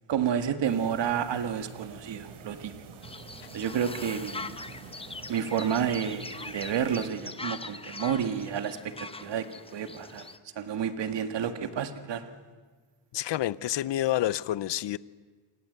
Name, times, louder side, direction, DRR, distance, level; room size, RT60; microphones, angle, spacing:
voice 1, 0.1-2.7 3.5-4.6 5.3-9.5 9.7-10.3 10.6-12.3, right 8 dB, 60° right, 1.9 m, -30 dB
sound 1, 0.6-7.1, right 5 dB, 80° right, 3.1 m, -47 dB
sound 2, 3.0-10.4, left 3 dB, 10° left, 0.8 m, -42 dB
voice 2, 13.1-15.0, left 13 dB, 60° left, 0.7 m, -28 dB
28.0 x 24.5 x 8.0 m
wide cardioid pair, 160°, 49 cm